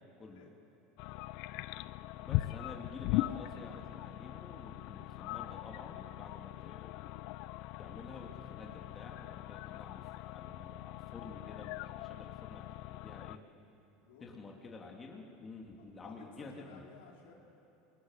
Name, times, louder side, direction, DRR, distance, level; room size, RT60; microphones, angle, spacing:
sound 1, 1.0-13.4, left 17 dB, 65° left, 0.5 m, -40 dB
voice 1, 2.2-7.0 7.8-13.4 14.2-16.9, left 3 dB, 25° left, 0 dB, 2.7 m, -50 dB
voice 2, 14.0-14.4 16.0-17.3, left 6 dB, 90° left, -1 dB, 4.4 m, -57 dB
27.0 x 21.5 x 6.6 m, 2.9 s
supercardioid pair, 120°, 0 cm